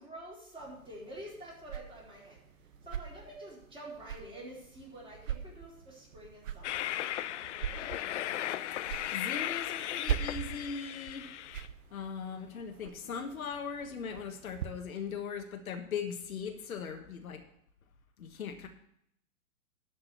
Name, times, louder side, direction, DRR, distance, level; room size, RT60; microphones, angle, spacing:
voice 1, 0.0-2.4 2.8-6.9 7.7-8.1, right 1 dB, 10° right, -5 dB, 4.2 m, -48 dB
sound 1, 0.6-14.7, right 10 dB, 60° right, 1.0 m, -42 dB
Train, 6.6-11.7, left 12 dB, 55° left, 0.6 m, -36 dB
voice 2, 9.1-11.3 11.9-17.4 18.2-18.7, left 6 dB, 70° left, 4 dB, 1.5 m, -39 dB
12.0 x 5.4 x 6.9 m, 0.73 s
hypercardioid pair, 125°, 44 cm